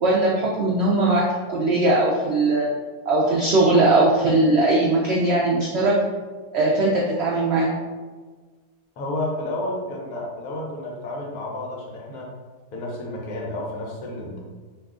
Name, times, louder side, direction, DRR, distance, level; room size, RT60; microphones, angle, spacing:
voice 1, 0.0-2.7 3.1-6.0 6.5-7.7, right 2 dB, 80° right, -4 dB, 0.6 m, -20 dB
voice 2, 9.0-12.3 12.7-14.4, left 1 dB, 70° left, -2 dB, 1.1 m, -31 dB
2.8 x 2.3 x 3.6 m, 1.4 s
omnidirectional pair, 1.7 m